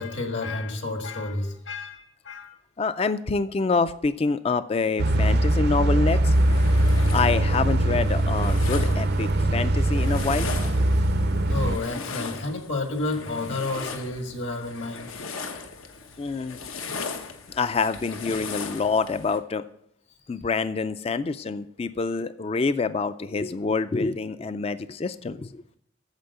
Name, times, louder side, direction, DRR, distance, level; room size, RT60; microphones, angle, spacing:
voice 1, 0.0-2.5 11.5-15.1, left 2 dB, 60° left, 5 dB, 1.7 m, -30 dB
voice 2, 2.8-6.3 7.1-10.5 16.2-16.6 17.5-19.6 20.3-25.6, left 4 dB, 30° left, 14 dB, 0.3 m, -26 dB
sound 1, 5.0-11.8, right 1 dB, 50° right, 0.5 m, -22 dB
sound 2, 6.1-19.4, left 4 dB, 85° left, 1.1 m, -38 dB
9.0 x 7.1 x 6.7 m, 0.72 s
head